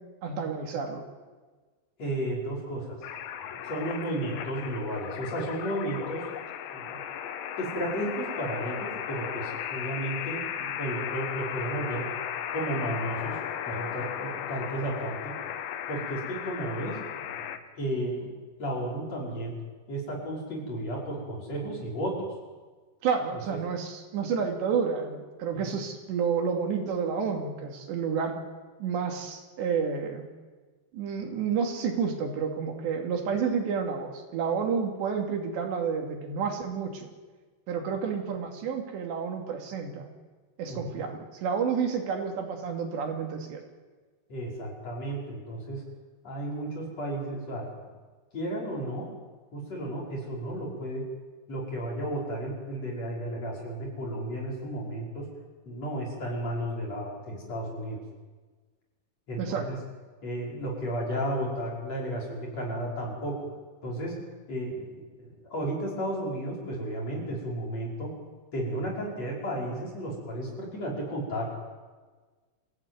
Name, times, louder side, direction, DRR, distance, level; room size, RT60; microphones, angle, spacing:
voice 1, 0.2-1.0 23.0-28.4 28.8-30.3 30.9-37.1 37.7-40.1 40.6-43.6 59.4-59.7, right 6 dB, 80° right, 2 dB, 4.8 m, -30 dB
voice 2, 2.0-3.0 3.4-6.3 6.7-7.0 7.6-12.1 12.5-13.4 13.6-15.3 15.9-17.4 17.8-18.3 18.6-19.6 19.9-22.3 23.3-23.6 25.5-25.7 40.7-41.1 44.3-45.8 46.2-47.9 48.3-49.1 49.5-51.0 51.5-55.2 55.6-58.0 59.3-59.8 60.2-63.4 63.8-64.1 64.5-68.1 68.5-71.6, right 1 dB, 35° left, -3 dB, 6.5 m, -33 dB
sound 1, 3.0-17.6, left 9 dB, 90° left, 3.5 m, -36 dB
28.0 x 15.5 x 9.4 m, 1.4 s
omnidirectional pair, 5.0 m